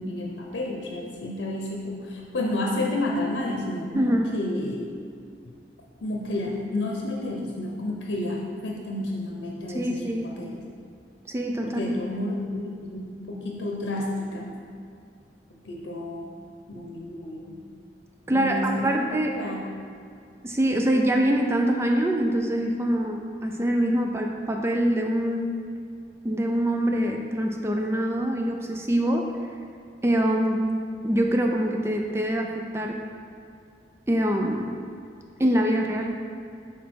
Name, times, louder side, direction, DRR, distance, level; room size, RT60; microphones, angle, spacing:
voice 1, 0.0-4.9 6.0-10.6 11.6-14.5 15.6-16.3 16.7-17.6 18.3-19.6, left 1 dB, 85° left, -2 dB, 0.7 m, -31 dB
voice 2, 3.9-4.3 9.7-10.3 11.3-11.8 18.3-19.4 20.4-25.6 26.2-29.3 30.0-30.6 31.0-33.0 34.1-34.8 35.4-36.2, right 1 dB, 15° right, 2 dB, 0.3 m, -24 dB
6.2 x 4.0 x 4.6 m, 2.3 s
head